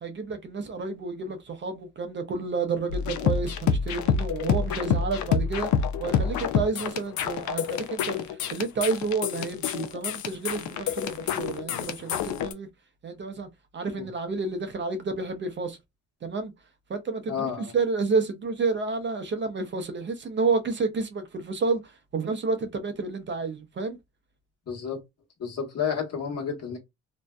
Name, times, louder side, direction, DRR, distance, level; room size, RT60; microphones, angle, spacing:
voice 1, 0.0-5.7 6.0-12.7 13.0-13.5 13.7-15.8 16.2-16.5 16.9-24.0, right 4 dB, 40° right, 0.6 m, -30 dB
sound 1, 2.9-12.5, left 7 dB, 70° left, 0.5 m, -28 dB
voice 2, 17.3-17.7 24.7-25.0 25.4-26.8, left 7 dB, 55° left, 1.1 m, -31 dB
2.6 x 2.1 x 2.2 m
cardioid pair, 90°, 30 cm